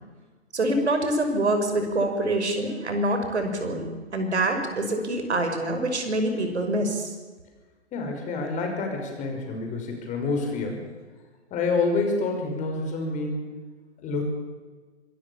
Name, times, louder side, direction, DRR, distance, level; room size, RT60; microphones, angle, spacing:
voice 1, 0.5-7.1, right 1 dB, 70° right, 6 dB, 6.0 m, -25 dB
voice 2, 7.9-10.8 11.5-13.4 14.0-14.2, left 3 dB, 20° left, 3 dB, 5.8 m, -28 dB
25.5 x 21.0 x 7.3 m, 1.4 s
figure-of-eight pair, 125°, 35 cm